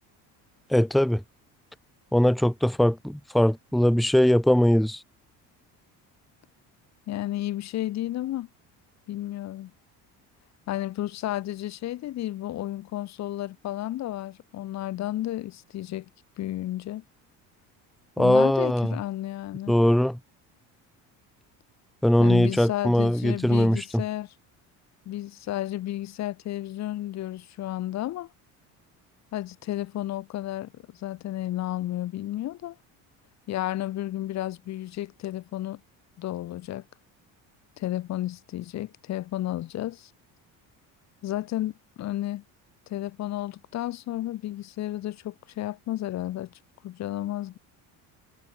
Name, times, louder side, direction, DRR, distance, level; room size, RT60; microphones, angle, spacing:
voice 1, 0.7-1.2 2.1-5.0 18.2-19.0 19.7-20.2 22.0-24.0, left 1 dB, ahead, 0.9 m, -21 dB
voice 2, 7.1-8.5 9.1-9.7 10.7-16.1 16.4-17.0 18.2-19.7 22.2-24.3 25.1-28.3 29.3-32.8 33.5-35.8 36.2-36.8 37.8-40.1 41.2-42.4 42.9-46.5 46.8-47.6, left 14 dB, 45° left, 2.4 m, -32 dB
cardioid pair, 170°, 37 cm